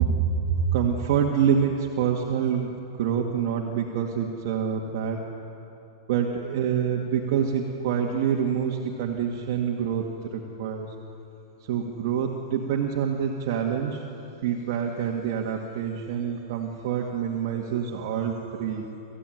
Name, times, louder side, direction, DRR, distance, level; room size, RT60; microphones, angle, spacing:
voice 1, 0.0-5.3 6.1-10.9 11.6-14.0 14.4-18.9, right 7 dB, 55° right, 0 dB, 2.0 m, -26 dB
28.5 x 14.5 x 9.3 m, 2.9 s
supercardioid pair, 150°, 2 cm